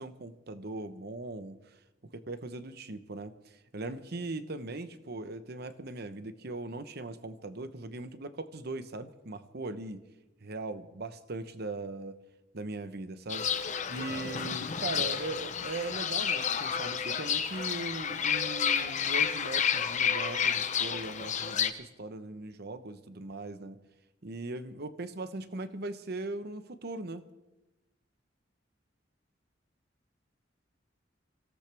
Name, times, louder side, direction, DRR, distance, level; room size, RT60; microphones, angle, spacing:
voice 1, 0.0-1.6 2.1-10.0 10.4-12.2 12.5-13.5 13.9-23.8 24.2-27.3, right 2 dB, 55° right, 11 dB, 1.0 m, -39 dB
Fowl / Bird, 13.3-21.7, left 7 dB, 40° left, 0.8 m, -30 dB
25.0 x 17.0 x 3.4 m, 1.0 s
head